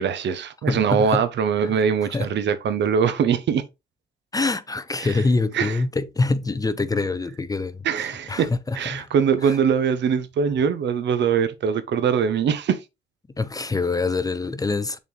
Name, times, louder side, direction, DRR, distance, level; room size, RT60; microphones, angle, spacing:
voice 1, 0.0-3.6 5.0-5.1 5.5-5.8 7.8-12.8, right 7 dB, 65° right, 0.8 m, -22 dB
voice 2, 0.7-1.3 1.6-1.8 2.1-2.3 4.3-9.1 9.4-9.6 13.4-15.0, left 3 dB, 20° left, 0.5 m, -25 dB
7.1 x 4.2 x 3.2 m
cardioid pair, 90°, 20 cm